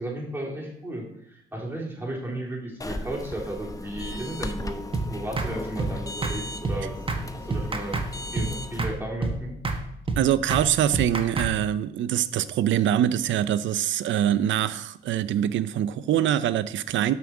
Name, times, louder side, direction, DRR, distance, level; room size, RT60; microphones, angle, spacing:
voice 1, 0.0-7.1 7.3-8.0 8.3-9.6, right 1 dB, 10° right, -3 dB, 3.6 m, -34 dB
sound 1, 2.8-8.8, left 1 dB, 15° left, 0.8 m, -37 dB
sound 2, 4.9-5.1 5.4-5.5 5.8-5.9 6.2-6.4 6.6-6.8 7.1-7.2 7.5-8.1 8.3-8.5 8.8-8.9 9.2-9.4 9.6-9.8 10.1-10.2 10.5-10.7 10.9-11.5, right 3 dB, 25° right, 1.2 m, -27 dB
voice 2, 10.2-17.1, right 11 dB, 70° right, 15 dB, 0.6 m, -24 dB
7.6 x 5.9 x 6.0 m, 0.75 s
cardioid pair, 90°, 20 cm